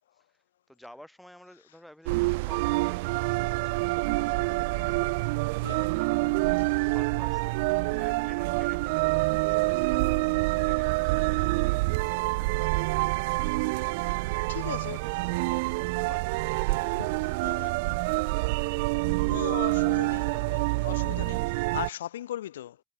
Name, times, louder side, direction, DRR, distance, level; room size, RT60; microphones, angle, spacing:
voice 1, 0.1-14.5 14.8-18.8 20.3-20.9, left 1 dB, ahead, 7.5 m, -54 dB
sound 1, 2.1-21.9, right 25 dB, 60° right, 0.4 m, -27 dB
voice 2, 5.6-6.0 10.7-10.8 14.5-15.3 17.4-17.7 19.2-22.8, left 12 dB, 75° left, 1.2 m, -38 dB
hypercardioid pair, 85°, 0 cm